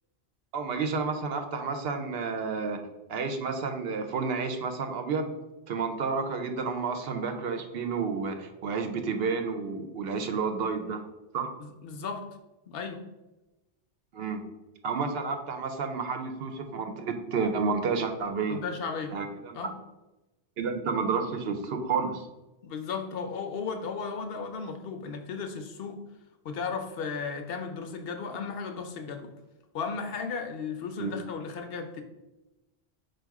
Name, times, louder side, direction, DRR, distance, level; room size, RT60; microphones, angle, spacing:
voice 1, 0.5-2.8 3.1-5.3 5.7-11.0 11.3-11.5 14.1-14.4 14.8-18.6 19.1-19.7 20.6-22.3 31.0-31.1, right 5 dB, 70° right, 5 dB, 0.8 m, -30 dB
voice 2, 11.6-12.2 12.7-13.0 18.5-19.2 19.5-19.7 22.6-26.0 26.4-29.3 29.7-32.0, left 5 dB, 65° left, 6 dB, 0.7 m, -35 dB
4.5 x 2.3 x 4.6 m, 1.0 s
omnidirectional pair, 1.1 m